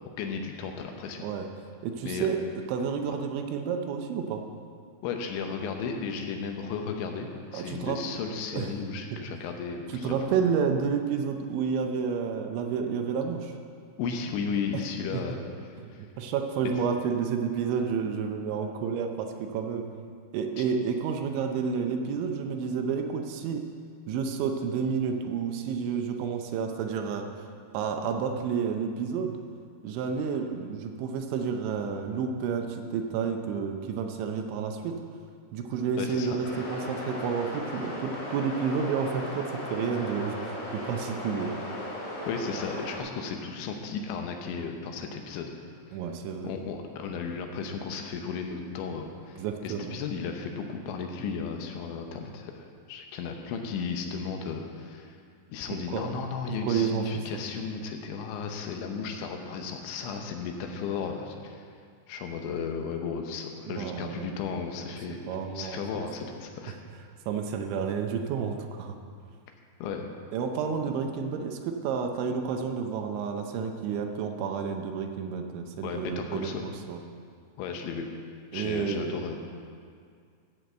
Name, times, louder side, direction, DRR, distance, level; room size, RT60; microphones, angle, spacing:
voice 1, 0.2-1.2 2.0-2.3 5.0-10.3 14.0-15.4 15.7-16.1 20.6-20.7 36.0-36.4 42.3-45.5 45.9-46.0 46.4-55.2 55.5-61.6 62.1-65.2 65.5-66.8 69.8-70.1 75.8-76.6 77.6-78.1 78.5-79.4, left 5 dB, 80° left, 4 dB, 3.2 m, -34 dB
voice 2, 1.8-2.4 2.7-4.4 7.5-8.0 8.5-8.7 9.9-13.5 14.7-14.8 15.1-15.2 15.8-19.8 20.3-23.6 24.1-27.3 27.7-29.4 29.8-35.0 35.5-41.5 45.9-46.5 49.4-50.0 55.7-56.1 56.6-57.0 63.7-64.4 64.9-65.0 65.3-66.1 67.3-69.0 70.3-76.5 76.9-77.0 78.5-79.3, right 6 dB, 80° right, 4 dB, 3.1 m, -30 dB
sound 1, 36.4-43.0, left 1 dB, 40° left, 3.1 m, -37 dB
14.5 x 5.8 x 7.8 m, 2.2 s
omnidirectional pair, 5.5 m